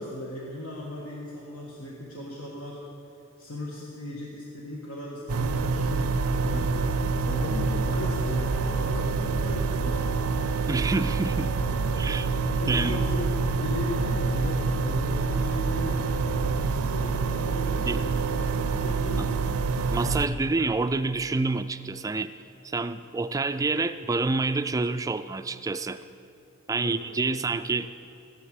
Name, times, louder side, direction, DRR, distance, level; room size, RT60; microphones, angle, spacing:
voice 1, 0.0-2.8 3.4-6.8 7.2-10.2 10.6-10.9 11.6-11.9 12.6-19.5 26.8-27.0 27.3-27.4, left 1 dB, 75° left, -3 dB, 1.6 m, -37 dB
sound 1, 5.3-20.3, right 4 dB, 85° right, 0.6 m, -26 dB
voice 2, 10.7-11.5 12.0-12.3 12.7-13.0 17.9-18.0 19.9-22.3 22.6-26.0 26.7-27.9, right 3 dB, 15° right, 11 dB, 0.3 m, -27 dB
13.0 x 9.8 x 7.7 m, 2.8 s
head